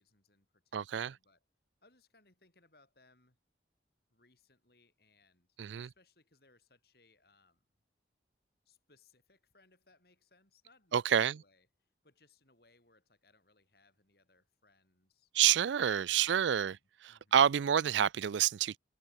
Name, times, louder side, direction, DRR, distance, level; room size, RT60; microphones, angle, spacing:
voice 1, 0.0-1.4 1.8-3.4 4.1-7.6 8.7-11.7 12.0-15.3 16.0-16.8 17.1-17.5, left 3 dB, 55° left, 6.0 m, -68 dB
voice 2, 0.7-1.2 5.6-5.9 10.9-11.4 15.3-16.8 17.0-18.8, right 9 dB, 80° right, 0.4 m, -28 dB
head